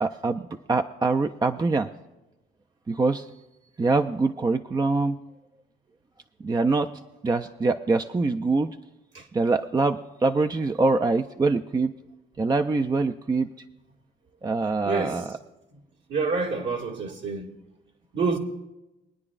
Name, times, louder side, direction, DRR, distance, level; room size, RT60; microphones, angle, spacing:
voice 1, 0.0-1.9 2.9-3.3 3.8-5.2 6.4-6.9 7.2-8.8 9.3-11.9 12.4-13.5 14.4-15.4, right 3 dB, 20° right, 0.4 m, -24 dB
voice 2, 14.9-15.2 16.1-17.5 18.1-18.4, right 4 dB, 70° right, 1.9 m, -27 dB
22.5 x 9.8 x 2.4 m
cardioid pair, 90°, 20 cm